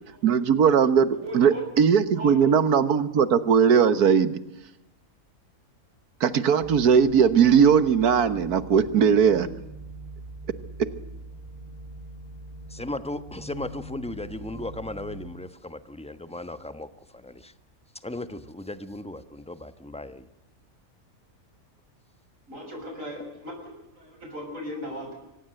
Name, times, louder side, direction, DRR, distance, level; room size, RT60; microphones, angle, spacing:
voice 1, 0.2-1.1 1.3-4.3 6.2-9.5, right 7 dB, 85° right, 1.8 m, -19 dB
voice 2, 1.2-1.6 2.1-2.5 22.5-23.5 23.9-25.2, equal, 55° right, 6.9 m, -37 dB
sound 1, 6.6-15.3, right 2 dB, 30° right, 6.2 m, -42 dB
voice 3, 12.7-17.5 18.0-20.3, left 1 dB, 5° left, 1.1 m, -36 dB
25.0 x 18.5 x 7.8 m
omnidirectional pair, 1.6 m